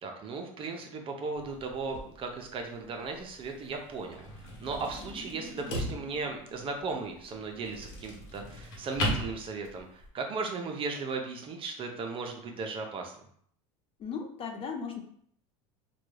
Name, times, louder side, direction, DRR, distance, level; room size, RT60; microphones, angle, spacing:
voice 1, 0.0-13.1, right 4 dB, 35° right, 3 dB, 0.6 m, -36 dB
sound 1, 1.4-10.1, equal, 75° left, 1.1 m, -39 dB
sound 2, 4.8-7.8, equal, 10° right, 0.9 m, -50 dB
voice 2, 14.0-15.0, left 6 dB, 35° left, 4 dB, 0.6 m, -36 dB
3.8 x 2.3 x 3.1 m, 0.64 s
supercardioid pair, 110°, 16 cm